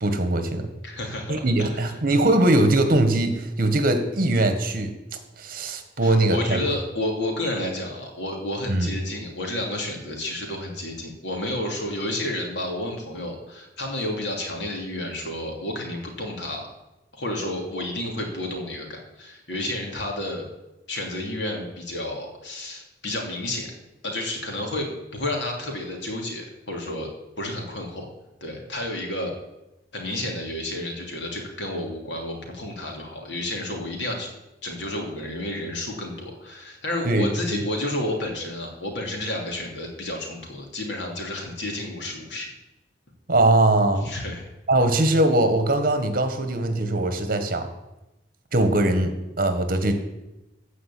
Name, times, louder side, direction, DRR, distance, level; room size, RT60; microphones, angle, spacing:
voice 1, 0.0-0.7 1.3-4.9 5.4-6.6 8.7-8.9 37.0-37.6 43.3-44.0 44.7-47.7 48.5-49.9, right 1 dB, 50° right, 8 dB, 1.5 m, -21 dB
voice 2, 0.8-1.9 6.0-16.7 17.1-20.4 20.9-23.7 24.0-27.1 27.4-28.1 28.4-29.3 29.9-34.3 34.6-42.5 44.0-44.4, left 1 dB, 75° left, 1 dB, 2.9 m, -31 dB
14.5 x 5.0 x 8.4 m, 0.96 s
head